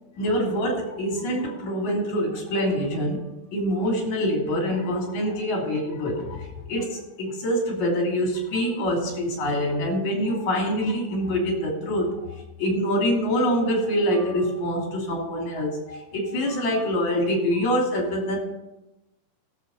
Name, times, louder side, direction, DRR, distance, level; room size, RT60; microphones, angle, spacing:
voice 1, 0.2-3.2 3.5-12.2 12.6-18.4, equal, 75° left, 0 dB, 4.3 m, -25 dB
15.0 x 7.0 x 5.4 m, 0.97 s
omnidirectional pair, 3.4 m